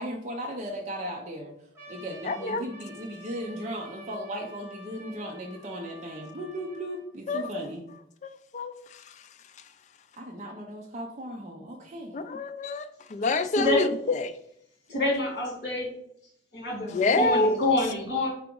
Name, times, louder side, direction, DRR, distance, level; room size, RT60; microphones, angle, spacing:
voice 1, 0.0-1.5 1.9-7.8 10.2-12.2, equal, 40° right, 0 dB, 0.5 m, -37 dB
Trumpet, 1.8-7.1, equal, 15° right, 1.4 m, -48 dB
voice 2, 2.3-2.6 7.3-7.5 8.2-8.7 12.1-13.9 14.2-14.3 16.9-17.6, left 3 dB, 40° left, 11 dB, 0.3 m, -26 dB
voice 3, 14.9-15.9 16.5-18.3, left 1 dB, 65° left, -2 dB, 1.6 m, -26 dB
4.7 x 2.9 x 3.7 m, 0.72 s
head